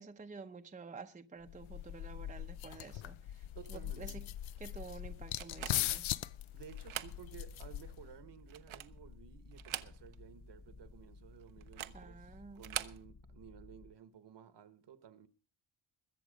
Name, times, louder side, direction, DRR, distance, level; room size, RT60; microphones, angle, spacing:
voice 1, 0.0-4.3 4.6-6.1 11.9-12.8, right 4 dB, 15° right, 0.7 m, -50 dB
sound 1, 1.5-8.2, left 13 dB, 85° left, 0.6 m, -40 dB
voice 2, 3.5-4.2 6.5-15.3, right 8 dB, 60° right, 1.2 m, -55 dB
sound 2, 5.4-6.1 6.7-7.2 7.6-7.7 8.4-9.0 9.5-10.3 10.6-10.7 11.6-12.0 12.6-13.0, right 12 dB, 85° right, 0.9 m, -43 dB
Purr, 7.0-14.0, left 3 dB, 35° left, 0.8 m, -56 dB
21.5 x 7.4 x 5.1 m
wide cardioid pair, 155°, 46 cm